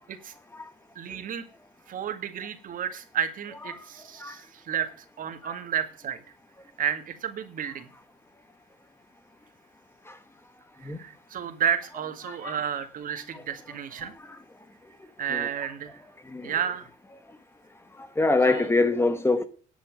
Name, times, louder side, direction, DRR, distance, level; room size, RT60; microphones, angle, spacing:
voice 1, 1.0-1.4 1.9-4.9 5.2-6.2 6.8-7.9 10.8-14.1 15.2-16.0 16.4-16.9 18.5-18.7, right 8 dB, 55° right, 2.0 m, -31 dB
voice 2, 12.3-12.6 13.3-13.4 14.0-14.1 15.3-15.5 16.3-16.5 18.2-19.4, left 3 dB, 15° left, 1.1 m, -25 dB
11.0 x 6.2 x 7.7 m
cardioid pair, 110°, 17 cm